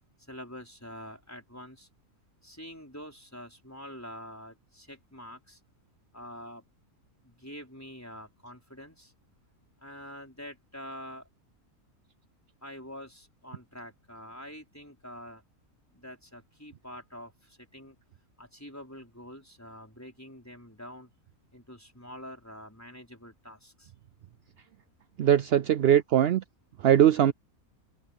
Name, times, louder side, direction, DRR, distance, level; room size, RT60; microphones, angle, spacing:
voice 1, 0.3-1.9 2.4-5.6 6.1-6.6 7.2-9.1 9.8-11.3 12.6-15.4 15.9-18.0 18.4-21.1 21.5-23.9, equal, 10° left, 4.9 m, -46 dB
voice 2, 25.2-26.4 26.8-27.3, right 10 dB, 70° right, 0.6 m, -21 dB
open air
omnidirectional pair, 1.5 m